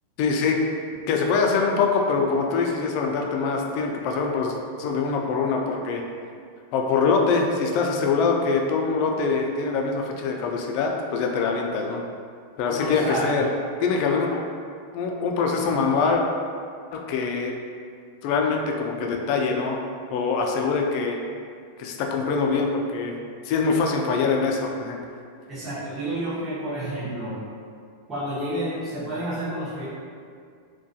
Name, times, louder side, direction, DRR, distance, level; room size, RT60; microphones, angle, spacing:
voice 1, 0.2-0.6 1.1-6.0 6.7-12.0 12.6-13.5 13.8-14.4 14.9-16.2 16.9-17.5 18.2-19.8 20.1-21.2 21.8-23.2 23.4-25.0, left 4 dB, 50° left, 1 dB, 0.3 m, -24 dB
voice 2, 12.7-13.5 25.5-27.4 28.1-29.9, right 1 dB, 20° right, -12 dB, 0.8 m, -30 dB
2.3 x 2.2 x 2.6 m, 2.2 s
supercardioid pair, 145°, 0 cm